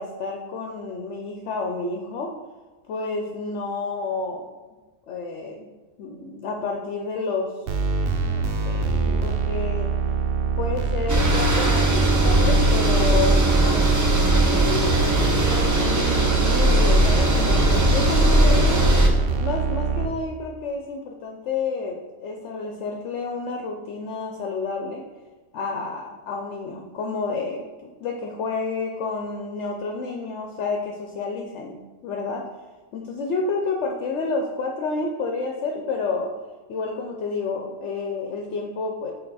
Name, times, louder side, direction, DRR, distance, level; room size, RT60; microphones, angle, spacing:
voice 1, 0.0-2.3 2.9-4.5 5.1-5.7 6.0-7.6 8.2-9.9 10.6-14.2 14.5-18.9 19.4-25.0 25.5-31.8 32.0-32.4 32.9-36.3 36.7-39.1, left 4 dB, 65° left, 1 dB, 0.9 m, -30 dB
sound 1, 7.7-20.1, right 4 dB, 55° right, 0.7 m, -23 dB
sound 2, 11.1-19.1, right 1 dB, 25° right, 0.4 m, -20 dB
6.6 x 3.9 x 4.0 m, 1.3 s
omnidirectional pair, 1.4 m